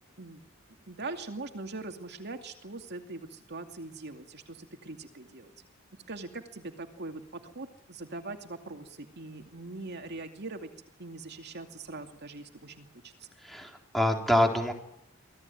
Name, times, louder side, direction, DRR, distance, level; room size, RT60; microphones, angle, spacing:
voice 1, 0.9-5.5 6.1-10.7 11.0-13.3, right 3 dB, 55° right, 6 dB, 2.5 m, -42 dB
voice 2, 13.4-14.7, left 1 dB, ahead, 3 dB, 3.8 m, -26 dB
25.0 x 17.5 x 9.4 m, 0.79 s
head